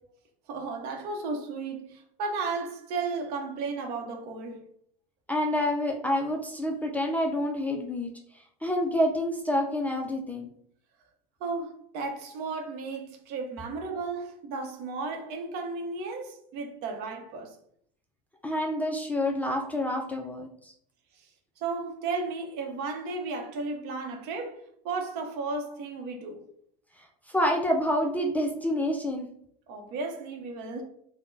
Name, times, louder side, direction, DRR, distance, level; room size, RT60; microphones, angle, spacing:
voice 1, 0.5-4.7 11.4-17.6 21.6-26.4 29.7-30.8, right 4 dB, 55° right, 0.7 m, -34 dB
voice 2, 5.3-8.1 8.6-10.5 18.4-20.5 27.0-29.3, left 1 dB, 10° left, 0.3 m, -28 dB
3.5 x 2.1 x 2.6 m
supercardioid pair, 110°, 20 cm